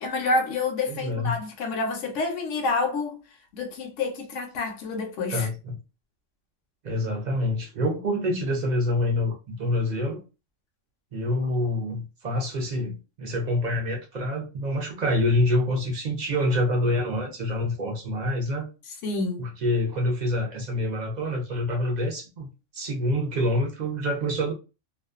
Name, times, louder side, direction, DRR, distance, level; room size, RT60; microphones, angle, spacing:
voice 1, 0.0-3.2 3.5-5.5 19.0-19.5, left 3 dB, 70° left, 0.9 m, -28 dB
voice 2, 0.9-1.4 5.3-5.8 6.8-10.2 11.1-18.7 19.4-22.5 22.7-24.5, left 1 dB, 55° right, 0.5 m, -26 dB
2.4 x 2.2 x 2.3 m
omnidirectional pair, 1.3 m